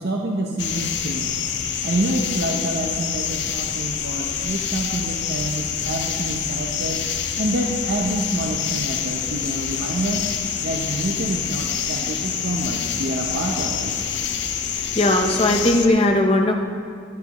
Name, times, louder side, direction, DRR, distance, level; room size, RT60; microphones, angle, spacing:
voice 1, 0.0-1.4 1.8-7.0 7.4-10.3 10.6-13.9, right 1 dB, 55° right, 0 dB, 0.7 m, -27 dB
sound 1, 0.6-15.9, left 8 dB, 60° left, 0.6 m, -27 dB
voice 2, 14.9-16.5, left 1 dB, 30° left, 4 dB, 0.8 m, -18 dB
15.0 x 10.5 x 3.0 m, 2.1 s
head